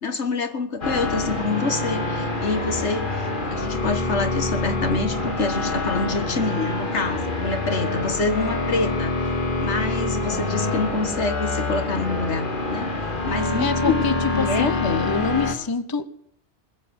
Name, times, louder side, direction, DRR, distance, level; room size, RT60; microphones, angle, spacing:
voice 1, 0.0-9.3 9.6-12.9 13.2-14.0 14.3-15.1, left 3 dB, 80° left, 8 dB, 1.9 m, -26 dB
sound 1, 0.8-15.5, left 2 dB, 50° left, 2.2 m, -26 dB
Wind instrument woodwind instrument, 7.7-12.1, right 7 dB, 65° right, 3.4 m, -39 dB
voice 2, 13.6-16.1, left 5 dB, 20° left, 13 dB, 0.8 m, -26 dB
20.5 x 8.4 x 7.2 m, 0.68 s
omnidirectional pair, 1.2 m